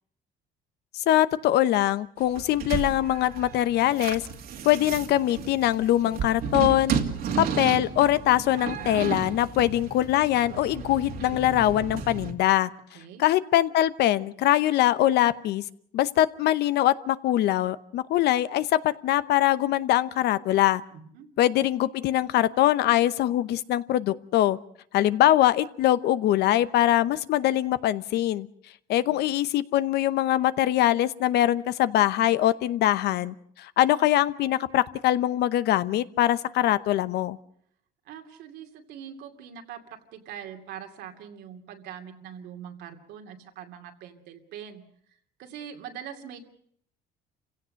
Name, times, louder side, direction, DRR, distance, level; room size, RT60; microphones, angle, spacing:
voice 1, 0.9-4.2 4.6-7.0 7.4-12.7 13.2-15.6 15.9-20.8 21.4-24.6 24.9-28.5 28.9-37.4, left 13 dB, 75° left, 16 dB, 0.9 m, -23 dB
sound 1, 2.2-12.3, right 6 dB, 65° right, 2.3 m, -33 dB
voice 2, 12.9-13.2 20.9-21.3 29.0-29.3 38.0-44.8 45.4-46.4, right 9 dB, 85° right, 4 dB, 2.6 m, -43 dB
28.5 x 16.5 x 6.5 m, 0.66 s
cardioid pair, 110°, 17 cm